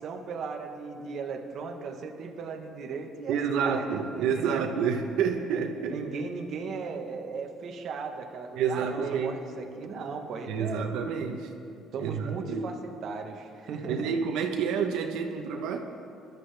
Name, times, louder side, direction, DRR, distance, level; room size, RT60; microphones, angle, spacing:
voice 1, 0.0-4.6 5.9-10.9 11.9-12.8 13.0-14.1, right 5 dB, 50° right, 3 dB, 1.1 m, -37 dB
voice 2, 3.3-6.0 8.6-9.3 10.5-11.5 12.0-12.7 13.9-15.8, right 6 dB, 85° right, 3 dB, 1.0 m, -29 dB
22.0 x 12.0 x 3.4 m, 2.6 s
cardioid pair, 155°, 0 cm